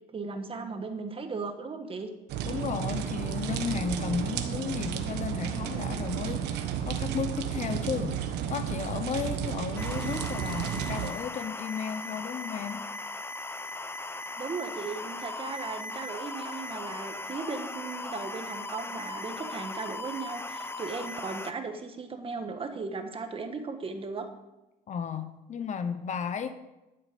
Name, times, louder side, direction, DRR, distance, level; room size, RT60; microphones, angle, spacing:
voice 1, 0.1-2.1 14.4-24.3, right 4 dB, 35° right, 6 dB, 1.5 m, -37 dB
sound 1, 2.3-11.1, right 9 dB, 85° right, 1.2 m, -32 dB
voice 2, 2.4-8.2 8.5-12.8 24.9-26.6, left 6 dB, 45° left, 10 dB, 1.0 m, -34 dB
sound 2, 9.8-21.5, left 2 dB, 15° left, 0.7 m, -38 dB
12.5 x 7.5 x 5.3 m, 0.99 s
cardioid pair, 110°, 17 cm